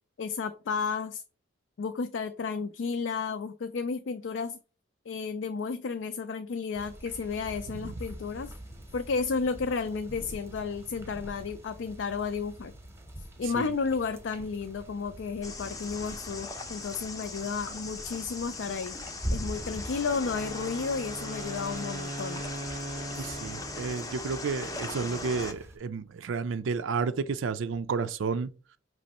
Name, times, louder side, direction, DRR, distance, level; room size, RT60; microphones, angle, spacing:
voice 1, 0.2-1.2 1.8-4.6 5.1-8.5 8.9-12.7 13.4-19.0 19.3-22.4 23.1-23.3, left 5 dB, 70° left, 0.4 m, -32 dB
sound 1, 6.7-25.8, equal, 15° right, 0.8 m, -44 dB
sound 2, 15.4-25.5, left 3 dB, 20° left, 0.5 m, -40 dB
Wind instrument woodwind instrument, 20.2-24.4, right 2 dB, 40° right, 0.5 m, -40 dB
voice 2, 23.2-28.5, right 5 dB, 90° right, 0.4 m, -31 dB
5.2 x 3.1 x 2.9 m
head